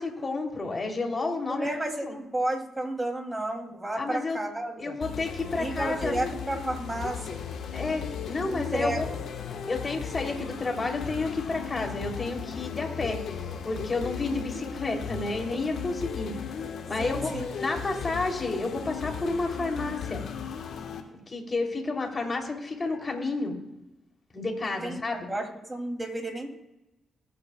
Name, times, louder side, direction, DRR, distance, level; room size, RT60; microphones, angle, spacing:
voice 1, 0.0-1.7 2.0-2.2 4.0-4.4 4.8-6.1 7.7-9.1 9.7-13.2 13.6-16.5 16.9-20.2 21.3-23.5 24.3-25.3, left 3 dB, 35° left, 1 dB, 3.1 m, -31 dB
voice 2, 1.5-5.0 5.6-7.4 8.5-9.2 17.0-17.4 24.6-26.5, right 1 dB, 20° right, 2 dB, 2.8 m, -32 dB
sound 1, 5.0-21.0, left 7 dB, 65° left, 1.3 m, -36 dB
21.0 x 8.6 x 2.3 m, 0.94 s
hypercardioid pair, 45°, 0 cm